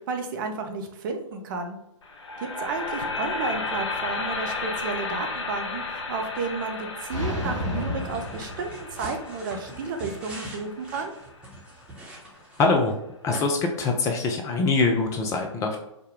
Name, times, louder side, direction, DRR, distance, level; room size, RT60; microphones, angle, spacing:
voice 1, 0.0-1.8 2.4-11.1, right 4 dB, 40° right, 4 dB, 0.7 m, -32 dB
sound 1, 2.0-12.1, left 3 dB, 60° left, 0.7 m, -34 dB
sound 2, 7.1-9.3, left 1 dB, 75° right, 1.4 m, -31 dB
sound 3, 8.0-12.9 13.3-13.4, right 2 dB, 5° right, 1.0 m, -42 dB
voice 2, 12.6-12.9 13.2-15.8, left 3 dB, 20° left, 3 dB, 0.5 m, -23 dB
4.9 x 2.1 x 3.5 m, 0.84 s
figure-of-eight pair, 115°, 16 cm